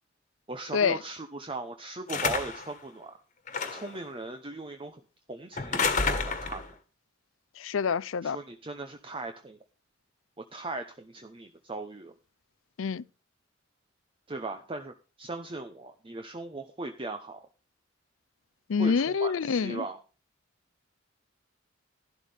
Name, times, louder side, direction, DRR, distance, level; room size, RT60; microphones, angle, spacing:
voice 1, 0.5-3.2 3.7-5.0 5.3-6.6 8.2-9.6 10.4-12.1 14.3-17.4 18.8-20.0, right 2 dB, 25° right, 0.9 m, -38 dB
sound 1, 2.1-2.7 3.5-4.0 5.6-6.7, left 4 dB, 40° left, 1.6 m, -29 dB
voice 2, 7.6-8.4 12.8-13.0 18.7-19.8, left 6 dB, 80° left, 0.5 m, -27 dB
13.0 x 12.0 x 3.5 m
head